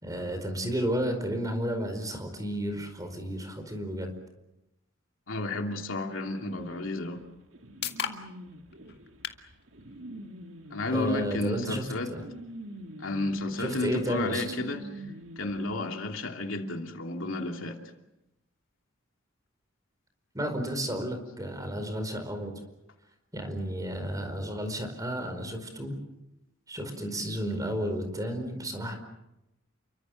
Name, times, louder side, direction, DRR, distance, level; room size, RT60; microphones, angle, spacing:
voice 1, 0.0-4.1 10.9-12.2 13.6-14.5 20.3-22.6 23.3-25.9 26.7-29.0, equal, 20° right, 4.8 m, -32 dB
voice 2, 5.3-7.2 10.7-12.1 13.0-15.0 15.4-17.8, left 2 dB, 75° left, 2.8 m, -32 dB
sound 1, 6.6-15.7, right 1 dB, 65° right, 2.2 m, -46 dB
sound 2, 7.1-21.0, left 7 dB, 55° left, 2.0 m, -46 dB
29.5 x 24.5 x 6.5 m
head